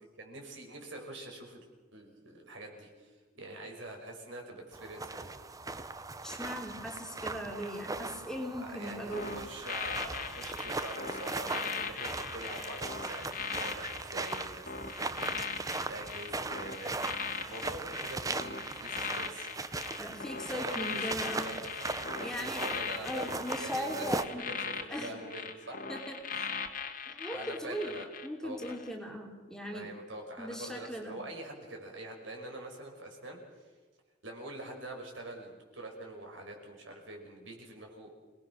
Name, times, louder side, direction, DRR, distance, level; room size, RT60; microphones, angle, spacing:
voice 1, 0.2-5.3 8.7-17.0 17.2-19.9 20.3-25.8 27.3-28.1 28.4-28.8 29.7-33.7 34.2-38.1, right 1 dB, 70° right, 2 dB, 5.5 m, -45 dB
walking forest icy ground foley trousers rustle, 4.7-24.2, right 3 dB, 15° right, 0.8 m, -39 dB
voice 2, 6.2-9.4 20.0-21.5 22.2-22.6 23.0-24.4 24.9-25.1 25.9-26.5 27.1-27.9 28.2-29.9 30.4-31.2, equal, 5° left, 0 dB, 3.0 m, -39 dB
sound 1, 9.1-28.3 28.6-28.9, left 6 dB, 45° left, 2.0 m, -39 dB
28.0 x 19.5 x 6.2 m, 1.3 s
head